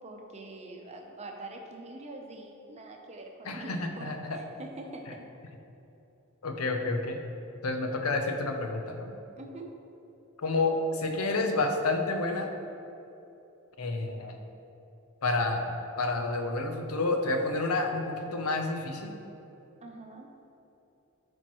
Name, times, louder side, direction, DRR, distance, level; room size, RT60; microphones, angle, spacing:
voice 1, 0.0-5.3 9.4-9.7 19.8-20.3, right 2 dB, 30° right, 2 dB, 0.7 m, -44 dB
voice 2, 3.5-4.4 6.4-7.2 7.6-9.1 10.4-12.5 13.8-14.4 15.2-19.1, left 2 dB, 80° left, 5 dB, 0.7 m, -29 dB
10.5 x 4.4 x 3.0 m, 2.9 s
head